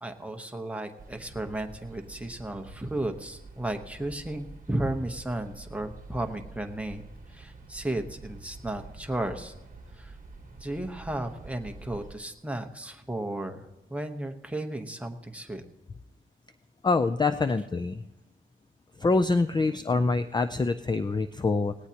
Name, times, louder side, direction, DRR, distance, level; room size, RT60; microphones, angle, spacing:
voice 1, 0.0-7.0 7.3-9.5 9.9-10.1 10.6-13.6 13.9-15.6, right 1 dB, 5° right, 4 dB, 1.0 m, -34 dB
sound 1, 1.0-12.2, right 3 dB, 40° right, 1.4 m, -47 dB
voice 2, 16.8-18.0 19.0-21.8, left 3 dB, 20° left, 9 dB, 0.4 m, -25 dB
18.0 x 17.5 x 2.9 m, 1.0 s
wide cardioid pair, 165°, 21 cm